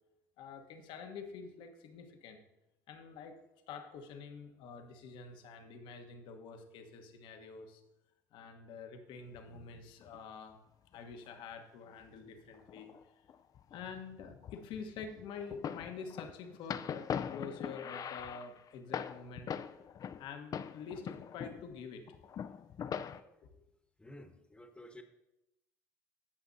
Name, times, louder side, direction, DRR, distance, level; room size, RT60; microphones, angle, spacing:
voice 1, 0.4-2.4 2.9-3.4 3.7-7.8 8.3-10.6 10.9-12.9 13.7-19.5 20.2-22.0 23.4-23.5, left 5 dB, 70° left, 5 dB, 1.2 m, -47 dB
sound 1, 9.3-10.2 10.9-11.3 12.2-13.0 13.3-20.3 20.5-21.8 22.1-23.2, left 8 dB, 45° left, 0.5 m, -42 dB
voice 2, 24.0-25.0, left 1 dB, 10° left, 6 dB, 1.2 m, -52 dB
16.0 x 5.9 x 2.7 m, 0.91 s
hypercardioid pair, 75°, 9 cm